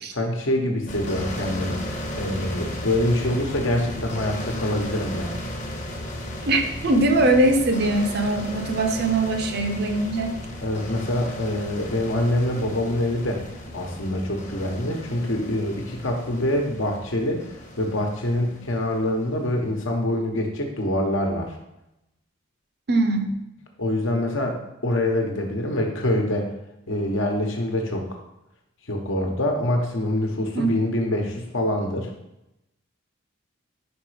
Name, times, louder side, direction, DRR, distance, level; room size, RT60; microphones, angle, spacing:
voice 1, 0.1-1.8 2.2-5.3 10.6-13.5 13.7-17.5 17.8-21.5 23.8-26.5 26.9-28.1 28.9-32.1, left 1 dB, 70° left, 2 dB, 1.1 m, -25 dB
sound 1, 0.9-19.5, equal, 35° left, 0.9 m, -35 dB
voice 2, 6.5-10.4 22.9-23.3 30.5-30.8, right 2 dB, 50° right, 5 dB, 0.6 m, -21 dB
5.3 x 4.1 x 4.9 m, 0.88 s
head